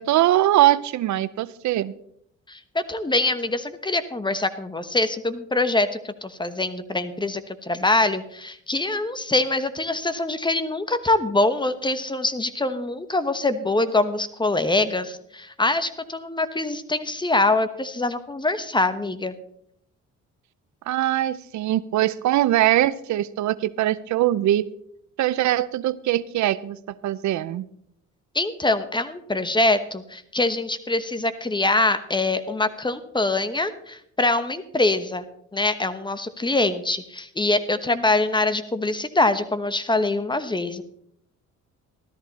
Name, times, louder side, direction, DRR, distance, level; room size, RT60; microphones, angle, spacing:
voice 1, 0.0-1.9 20.9-24.6 25.2-27.6, right 14 dB, 70° right, 18 dB, 0.6 m, -22 dB
voice 2, 2.5-19.3 28.3-35.2 35.5-40.8, left 2 dB, 15° left, 12 dB, 1.1 m, -24 dB
14.0 x 13.0 x 4.1 m, 0.70 s
cardioid pair, 90°, 30 cm